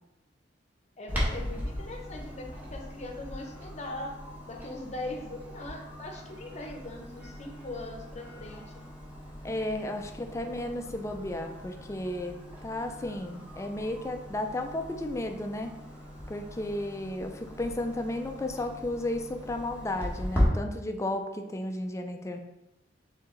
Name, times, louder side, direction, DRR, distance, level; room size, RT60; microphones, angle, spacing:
voice 1, 1.0-4.1 4.5-8.8 9.8-9.9, left 2 dB, 40° left, 2 dB, 0.7 m, -40 dB
Clock, 1.1-20.5, equal, 10° right, 1.1 m, -38 dB
voice 2, 9.4-12.4 12.6-15.7 16.3-22.4, left 1 dB, 15° left, 5 dB, 0.4 m, -33 dB
4.6 x 3.6 x 3.0 m, 0.93 s
head